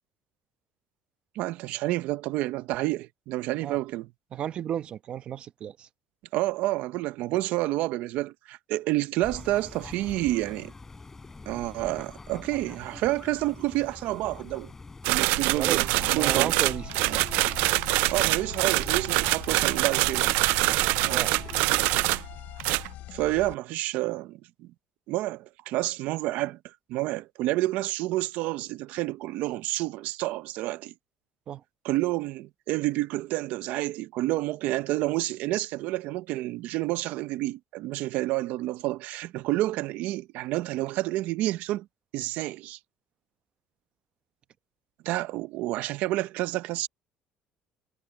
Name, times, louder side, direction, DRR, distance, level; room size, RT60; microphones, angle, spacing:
voice 1, 1.4-4.1 6.3-10.7 11.5-14.7 15.1-16.7 17.1-17.3 18.1-20.3 21.0-21.2 23.1-24.4 25.1-26.6 26.9-30.9 31.8-41.8 42.1-42.8 45.0-46.9, right 17 dB, 65° right, 0.8 m, -29 dB
voice 2, 4.3-5.9 15.5-17.2 21.1-21.4 31.5-31.6, right 9 dB, 35° right, 1.0 m, -34 dB
sound 1, 9.2-22.2, left 3 dB, 15° left, 6.2 m, -45 dB
sound 2, 15.0-22.3 22.6-22.9, right 22 dB, 90° right, 0.3 m, -25 dB
sound 3, 15.9-23.5, left 15 dB, 60° left, 4.1 m, -43 dB
cardioid pair, 165°, 3 cm